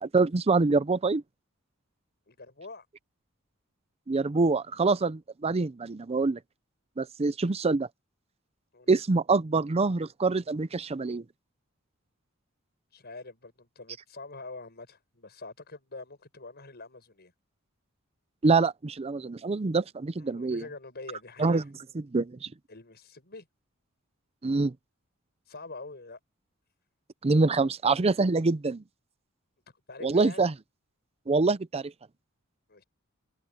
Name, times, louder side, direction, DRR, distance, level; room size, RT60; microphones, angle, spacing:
voice 1, 0.0-1.2 4.1-6.4 7.0-7.9 8.9-11.2 18.4-20.6 21.4-21.6 21.9-22.5 24.4-24.7 27.2-28.8 30.0-30.5 31.3-31.9, right 3 dB, 30° right, 0.5 m, -25 dB
voice 2, 2.3-2.9 8.7-9.0 12.9-17.3 20.2-21.7 22.7-23.5 25.5-26.2 27.5-27.7 29.9-30.4 32.7-32.8, left 3 dB, 50° left, 6.4 m, -45 dB
head